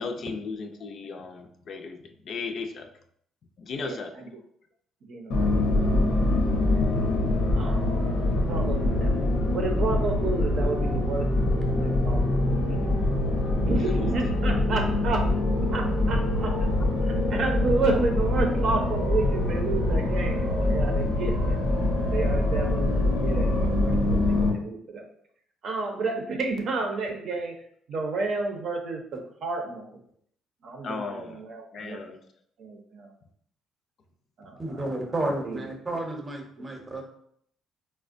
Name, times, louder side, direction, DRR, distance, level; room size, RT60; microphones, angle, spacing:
voice 1, 0.0-2.0 2.3-2.9 3.6-4.1 13.8-14.1 30.8-31.4 31.7-32.2, left 4 dB, 55° left, 4 dB, 0.4 m, -35 dB
voice 2, 3.8-4.3 5.1-5.5 6.2-6.3 7.5-8.0 8.3-9.2 9.5-11.3 11.7-12.8 13.2-15.2 15.7-16.5 17.0-21.6 22.1-25.0 25.6-27.5 27.9-29.9 30.6-32.0 32.6-33.1 34.4-35.0 35.4-35.6 36.6-36.7, right 3 dB, 60° right, 3 dB, 0.6 m, -31 dB
sound 1, 5.3-24.5, left 2 dB, 85° left, 0.7 m, -24 dB
voice 3, 34.6-37.0, right 1 dB, 20° right, 2 dB, 0.7 m, -31 dB
4.3 x 2.1 x 2.5 m, 0.67 s
cardioid pair, 110°, 0 cm